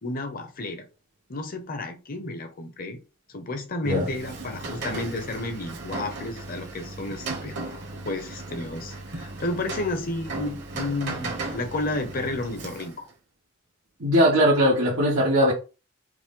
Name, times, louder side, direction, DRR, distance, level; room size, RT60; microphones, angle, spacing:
voice 1, 0.0-0.8 1.3-3.0 3.3-7.8 8.0-13.1, left 2 dB, 45° left, 0.8 m, -32 dB
Rain, 3.9-13.1, right 3 dB, 60° right, 1.1 m, -36 dB
voice 2, 14.0-15.5, equal, 85° right, 1.3 m, -20 dB
4.9 x 2.1 x 3.7 m
head